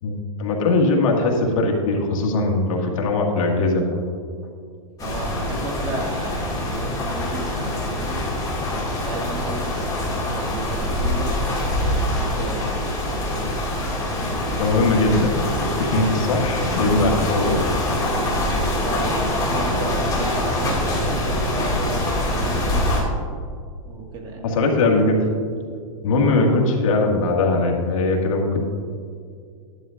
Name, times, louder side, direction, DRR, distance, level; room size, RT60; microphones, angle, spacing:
voice 1, 0.0-4.1 14.6-15.3 15.6-17.6 24.4-25.3 26.0-28.7, left 2 dB, 65° left, 0 dB, 2.0 m, -20 dB
sound 1, 5.0-23.0, left 1 dB, 20° left, 2.3 m, -24 dB
voice 2, 5.0-8.3 9.0-9.9 10.3-11.4 12.2-12.7 18.8-22.8 23.8-24.4, right 2 dB, 25° right, -1 dB, 1.9 m, -33 dB
12.5 x 11.0 x 2.6 m, 2.1 s
hypercardioid pair, 145°, 18 cm